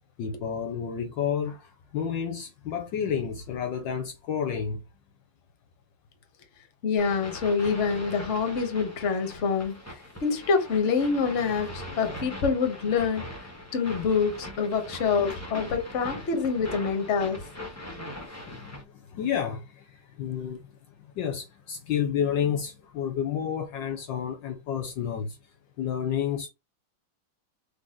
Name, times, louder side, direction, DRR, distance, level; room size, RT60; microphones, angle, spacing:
voice 1, 0.2-4.8 18.0-20.8 21.1-25.4 25.8-26.5, left 8 dB, 70° left, 1.3 m, -30 dB
voice 2, 6.8-9.8 10.2-13.3 13.7-17.4, left 5 dB, 45° left, 1.2 m, -26 dB
sound 1, 7.0-18.8, left 1 dB, 10° left, 0.9 m, -41 dB
4.0 x 3.4 x 3.6 m
omnidirectional pair, 2.3 m